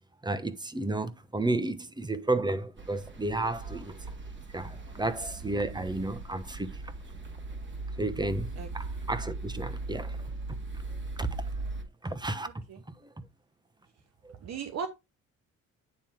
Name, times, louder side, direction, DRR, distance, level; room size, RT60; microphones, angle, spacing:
voice 1, 0.2-3.9 4.5-6.7 8.0-8.5 8.7-10.2 11.2-11.4 12.0-12.5 14.2-14.3, right 2 dB, 15° right, 1.0 m, -32 dB
sound 1, 2.8-11.8, right 3 dB, 40° right, 2.3 m, -39 dB
voice 2, 12.4-12.8 14.4-14.9, right 6 dB, 60° right, 1.1 m, -37 dB
9.5 x 3.4 x 4.4 m
cardioid pair, 90°, 30 cm